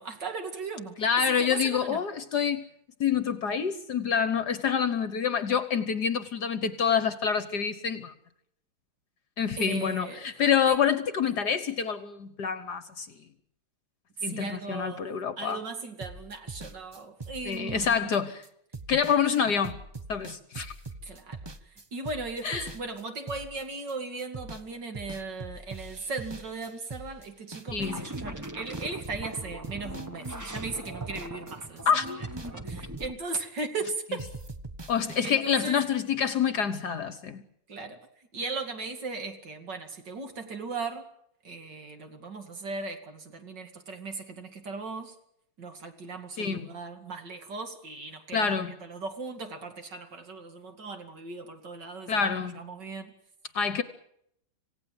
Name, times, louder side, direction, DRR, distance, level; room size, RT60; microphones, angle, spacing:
voice 1, 0.0-2.0 9.6-10.3 10.7-11.0 14.2-15.1 15.4-18.2 19.4-19.5 21.0-32.2 32.4-34.2 35.2-35.8 37.7-38.0 38.3-41.1 41.4-45.1 45.6-52.3 52.5-53.1, right 3 dB, 55° right, 3.0 m, -37 dB
voice 2, 1.0-2.6 3.0-8.1 9.4-13.1 14.2-15.6 17.4-18.4 18.9-19.8 20.1-20.7 22.4-22.7 27.7-28.1 31.8-32.1 34.9-37.5 46.4-46.7 48.3-48.8 52.1-52.6 53.5-53.8, left 7 dB, 55° left, 1.5 m, -27 dB
sound 1, 16.0-23.9 24.2-24.7 24.9-29.1 29.3-33.9 34.2-35.4, right 3 dB, 30° right, 0.4 m, -43 dB
sound 2, 27.8-33.1, right 1 dB, 15° right, 0.8 m, -40 dB
27.0 x 17.0 x 7.8 m
omnidirectional pair, 2.4 m